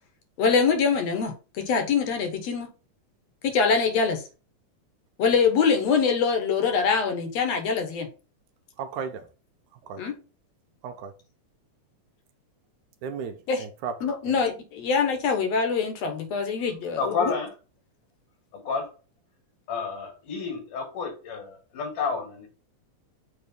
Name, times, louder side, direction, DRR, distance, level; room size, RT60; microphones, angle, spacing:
voice 1, 0.4-2.7 3.4-4.2 5.2-8.1 10.0-10.1 13.5-13.6 14.0-17.3, left 5 dB, 65° left, 2.1 m, -24 dB
voice 2, 8.8-9.3 9.8-10.0 10.8-11.1 13.0-14.0 14.3-14.4, right 6 dB, 80° right, 2.2 m, -35 dB
voice 3, 17.0-17.5 18.7-18.9 19.7-22.5, left 5 dB, 85° left, 3.6 m, -30 dB
7.0 x 3.2 x 5.3 m
omnidirectional pair, 3.6 m